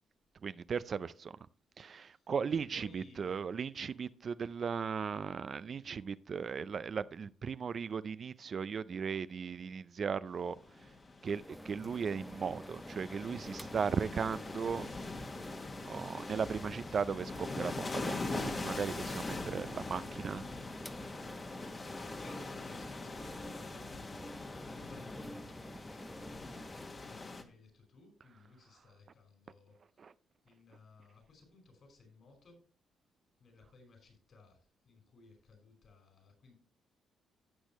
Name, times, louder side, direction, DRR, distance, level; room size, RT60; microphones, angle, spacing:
voice 1, 0.4-1.3 1.8-10.6 11.2-14.9 15.8-20.4 30.0-30.1, right 6 dB, 50° right, 0.4 m, -37 dB
voice 2, 2.1-3.3 21.5-23.9 24.6-26.6 26.9-29.7 30.5-32.6 33.4-34.6 34.9-36.5, left 3 dB, 55° left, 5.2 m, -60 dB
sound 1, 10.5-27.4, left 3 dB, 35° left, 1.6 m, -43 dB
sound 2, 11.3-26.9, equal, ahead, 0.6 m, -49 dB
16.5 x 6.3 x 3.1 m
cardioid pair, 80°, 0 cm